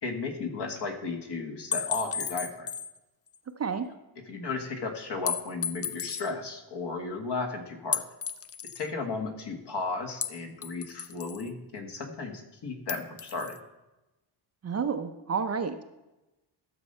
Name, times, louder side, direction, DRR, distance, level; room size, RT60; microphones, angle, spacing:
voice 1, 0.0-2.7 4.3-8.0 8.7-13.6, left 3 dB, 55° left, 5 dB, 1.7 m, -34 dB
sound 1, 1.7-3.0 3.3-3.4 5.3-6.3 7.9-8.9 10.2-11.5 12.9-13.6, left 7 dB, 30° left, 0.4 m, -33 dB
voice 2, 3.6-3.9 14.6-15.8, right 6 dB, 30° right, 7 dB, 0.6 m, -30 dB
12.5 x 6.8 x 5.4 m, 1.0 s
cardioid pair, 145°, 49 cm